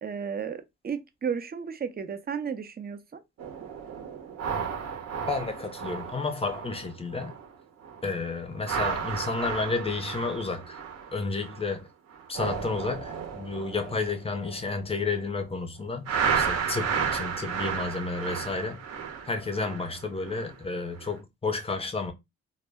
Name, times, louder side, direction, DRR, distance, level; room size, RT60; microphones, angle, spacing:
voice 1, 0.0-3.2, right 7 dB, 30° right, 0.5 m, -33 dB
sound 1, 3.4-7.5 7.8-8.1 8.5-11.8 12.1-15.4 16.1-20.6 21.0-21.2, right 6 dB, 55° right, 0.8 m, -33 dB
voice 2, 5.3-7.4 8.0-10.8 11.1-11.9 12.3-18.8 19.3-22.1, left 3 dB, 20° left, 0.6 m, -31 dB
2.1 x 2.1 x 3.4 m
cardioid pair, 90°, 30 cm